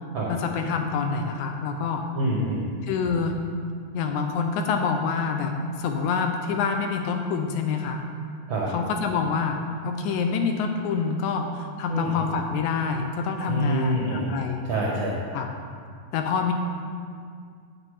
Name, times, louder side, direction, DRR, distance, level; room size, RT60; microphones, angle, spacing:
voice 1, 0.3-2.1 2.8-3.4 3.9-8.0 8.7-14.6 15.3-15.5 16.1-16.5, left 5 dB, 80° left, 5 dB, 1.9 m, -27 dB
voice 2, 2.1-2.7 8.5-8.7 11.9-12.3 13.4-14.4 14.6-15.2, equal, 70° right, -4 dB, 1.1 m, -26 dB
8.1 x 7.6 x 4.8 m, 2.2 s
omnidirectional pair, 3.7 m